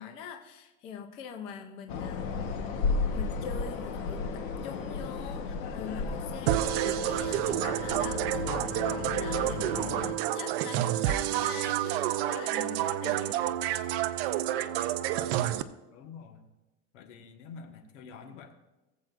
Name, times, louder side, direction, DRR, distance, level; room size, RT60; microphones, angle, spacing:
voice 1, 0.0-2.3 3.1-13.9, left 6 dB, 15° left, 4 dB, 0.3 m, -44 dB
sound 1, 1.9-10.1, left 4 dB, 50° left, 1.1 m, -34 dB
sound 2, 6.5-15.6, right 12 dB, 55° right, 0.5 m, -29 dB
voice 2, 15.3-16.5 16.9-18.5, left 5 dB, 75° left, 6 dB, 1.4 m, -48 dB
19.0 x 7.5 x 2.4 m, 1.0 s
supercardioid pair, 175°, 36 cm